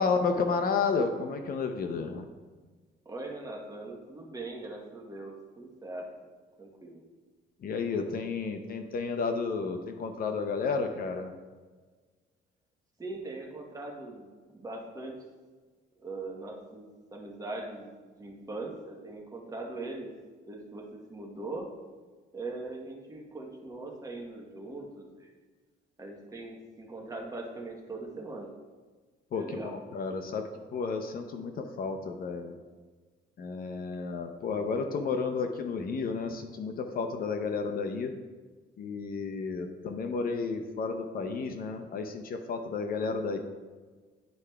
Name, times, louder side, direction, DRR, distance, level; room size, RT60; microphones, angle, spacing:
voice 1, 0.0-2.2 7.6-11.3 29.3-32.6 33.4-38.1 38.8-43.4, left 4 dB, 50° left, 6 dB, 0.5 m, -32 dB
voice 2, 3.0-6.0 6.6-7.0 13.0-15.2 16.0-20.1 20.5-21.7 22.3-25.3 26.0-28.5 29.3-29.7, right 2 dB, 15° right, 0 dB, 1.0 m, -41 dB
10.5 x 4.7 x 2.2 m, 1.4 s
cardioid pair, 140°, 20 cm